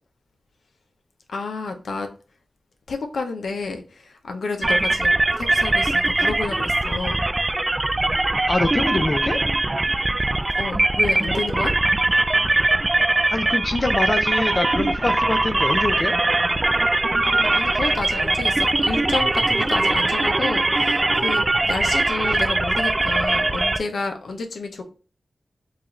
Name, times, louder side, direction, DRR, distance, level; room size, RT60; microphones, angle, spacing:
voice 1, 1.3-2.1 2.9-7.3 10.6-11.7 17.2-24.8, left 3 dB, 85° left, 5 dB, 0.6 m, -30 dB
sound 1, 4.6-23.8, right 2 dB, 30° right, 0.3 m, -21 dB
voice 2, 8.5-9.4 13.3-16.2, left 2 dB, 45° left, 7 dB, 0.5 m, -24 dB
4.9 x 2.5 x 3.1 m, 0.36 s
cardioid pair, 50°, 0 cm